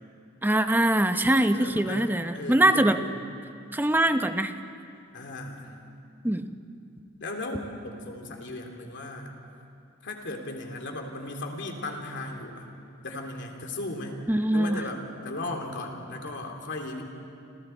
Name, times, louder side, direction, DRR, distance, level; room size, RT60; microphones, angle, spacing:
voice 1, 0.4-3.0 3.7-4.5 6.2-6.5 14.3-14.8, right 1 dB, 10° right, 8 dB, 0.8 m, -23 dB
voice 2, 1.4-2.1 2.3-3.4 5.1-5.8 7.2-9.3 10.0-12.7 13.0-14.2 14.5-17.0, left 2 dB, 60° left, 3 dB, 2.9 m, -36 dB
29.5 x 27.5 x 4.5 m, 2.5 s
head